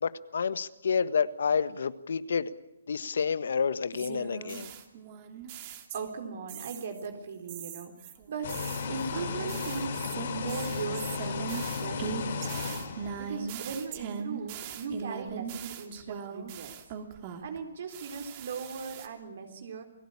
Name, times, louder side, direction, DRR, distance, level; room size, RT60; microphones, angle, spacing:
voice 1, 0.0-2.5 2.9-4.7, left 6 dB, 70° left, 14 dB, 1.5 m, -29 dB
sound 1, 3.9-6.2 6.5-7.1 7.5-17.6 17.9-19.1, right 7 dB, 30° right, 2.9 m, -40 dB
voice 2, 5.9-8.5 8.9-12.9 13.1-16.7 17.4-19.8, right 5 dB, 55° right, 5 dB, 3.9 m, -39 dB
sound 2, 8.4-13.6, left 5 dB, 50° left, 5.7 m, -35 dB
28.5 x 18.0 x 8.6 m, 0.89 s
hypercardioid pair, 160°, 0 cm